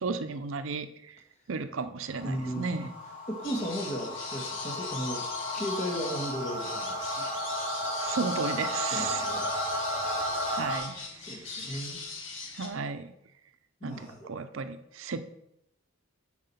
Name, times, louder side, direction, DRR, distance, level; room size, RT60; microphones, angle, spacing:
voice 1, 0.0-1.1 1.5-2.9 8.0-9.2 10.5-10.9 11.3-11.4 11.7-11.8 12.6-13.1 13.8-15.4, right 4 dB, 70° right, 11 dB, 0.5 m, -34 dB
sound 1, 2.1-10.8, equal, 10° right, 2.9 m, -34 dB
voice 2, 2.2-2.9 3.3-5.3 5.5-7.3 8.9-9.5 11.2-12.0 13.8-14.3, equal, 30° left, 1 dB, 1.6 m, -35 dB
sound 2, 3.4-12.7, left 4 dB, 60° left, 1.6 m, -40 dB
9.0 x 4.9 x 5.6 m, 0.81 s
head